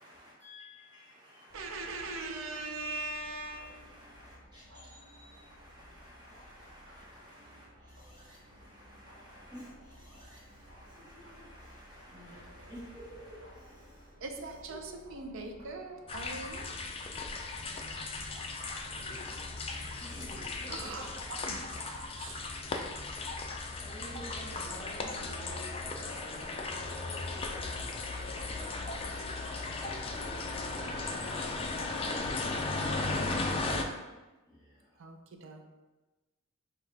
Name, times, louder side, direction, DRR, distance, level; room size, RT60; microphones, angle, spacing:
voice 1, 0.0-14.1 14.7-15.1 20.0-20.3 22.3-22.4 23.8-25.3 34.5-35.0, equal, 20° right, -7 dB, 1.2 m, -52 dB
voice 2, 1.5-3.8 14.2-16.7 20.7-22.4 35.0-35.6, right 3 dB, 70° right, 4 dB, 0.5 m, -41 dB
sound 1, 1.5-21.1, equal, 90° right, 1.0 m, -56 dB
sound 2, 16.1-33.8, left 3 dB, 25° left, 0.4 m, -36 dB
voice 3, 18.8-19.5 20.3-21.4 22.3-22.8 24.2-33.7, equal, 50° left, -5 dB, 1.0 m, -52 dB
5.4 x 2.4 x 3.3 m, 1.2 s
head